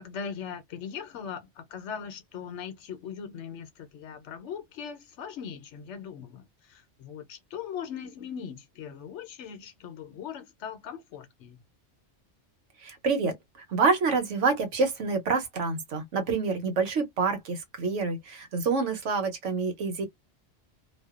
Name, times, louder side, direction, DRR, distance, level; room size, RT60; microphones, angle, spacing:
voice 1, 0.0-11.6, left 7 dB, 75° left, 0.9 m, -40 dB
voice 2, 12.8-13.3 13.7-20.1, right 4 dB, 85° right, 1.2 m, -27 dB
2.5 x 2.2 x 2.3 m
omnidirectional pair, 1.2 m